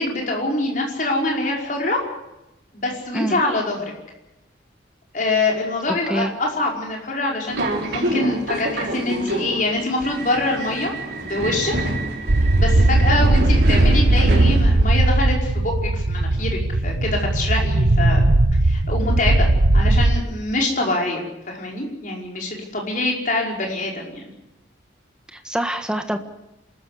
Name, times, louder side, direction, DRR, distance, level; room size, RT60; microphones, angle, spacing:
voice 1, 0.0-2.0 2.7-3.9 5.1-11.7 12.6-18.3 18.7-24.3, left 2 dB, 45° left, -1 dB, 5.2 m, -24 dB
voice 2, 5.9-6.3 25.3-26.2, right 1 dB, 5° right, 6 dB, 1.4 m, -25 dB
Subway metro underground, 7.5-15.0, right 1 dB, 55° right, 4.1 m, -26 dB
sound 1, 12.3-20.2, right 2 dB, 90° right, 1.2 m, -17 dB
27.5 x 14.0 x 8.4 m, 0.94 s
head